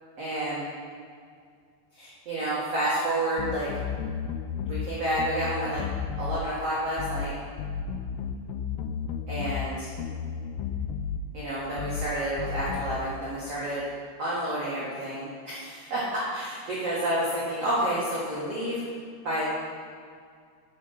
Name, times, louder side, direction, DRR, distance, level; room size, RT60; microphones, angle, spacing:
voice 1, 0.2-0.6 1.9-3.7 4.6-5.8 6.2-7.3 9.3-9.9 11.3-13.8 14.2-18.8 19.2-19.5, right 1 dB, 60° right, -8 dB, 1.6 m, -29 dB
sound 1, 3.4-4.9 5.2-6.4 7.0-7.3 7.6-9.7 10.0-11.2 11.8-12.1 12.4-13.0, left 7 dB, 85° left, 3.0 m, -33 dB
9.8 x 7.4 x 5.7 m, 2.1 s
omnidirectional pair, 6.0 m